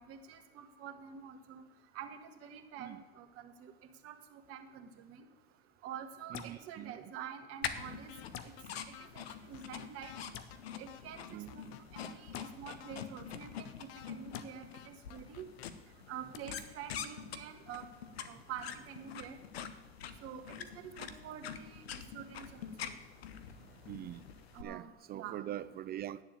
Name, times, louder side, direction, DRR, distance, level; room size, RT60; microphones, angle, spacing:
voice 1, 0.0-1.6 1.9-3.7 4.0-5.2 5.8-8.1 8.4-8.5 8.9-10.1 10.8-11.2 11.5-11.7 11.9-12.3 12.6-15.5 16.1-17.8 18.3-19.4 20.2-20.6 20.8-21.8 22.1-22.4 24.5-25.4, right 8 dB, 50° right, 5 dB, 1.6 m, -47 dB
sound 1, 6.3-6.6 8.3-8.5 10.3-10.5 12.3-12.5 14.3-14.5 16.3-16.4, left 9 dB, 45° left, 1.1 m, -45 dB
voice 2, 6.3-7.0 11.3-11.5 23.6-24.2 24.6-26.2, right 12 dB, 30° right, 16 dB, 0.4 m, -43 dB
sound 2, 7.6-24.6, left 8 dB, 80° left, 1.0 m, -46 dB
sound 3, 8.1-8.3 8.6-8.7 8.9-10.2 10.5-10.6 10.9-12.1 12.4-12.5 12.8-14.1 14.4-14.5 14.7-15.7, left 12 dB, 60° left, 0.9 m, -52 dB
9.8 x 7.2 x 8.7 m, 1.1 s
hypercardioid pair, 85°, 30 cm